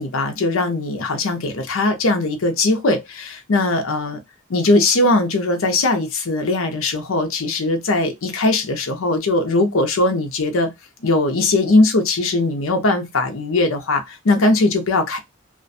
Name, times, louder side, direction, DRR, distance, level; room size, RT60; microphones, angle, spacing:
voice 1, 0.0-4.2 4.5-10.7 11.0-15.2, left 2 dB, 75° left, 0.6 m, -19 dB
2.5 x 2.2 x 2.6 m
head